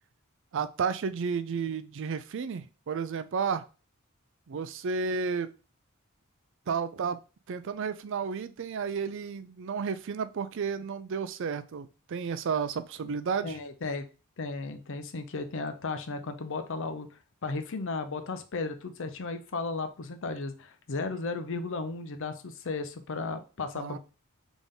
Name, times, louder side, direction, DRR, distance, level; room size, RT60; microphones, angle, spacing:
voice 1, 0.5-3.7 4.5-5.5 6.7-7.2 7.5-13.6 23.8-24.0, right 5 dB, 60° right, 12 dB, 0.4 m, -32 dB
voice 2, 13.4-14.1 14.4-17.1 17.4-24.0, left 3 dB, 60° left, 9 dB, 0.6 m, -35 dB
4.0 x 3.6 x 3.6 m, 0.34 s
head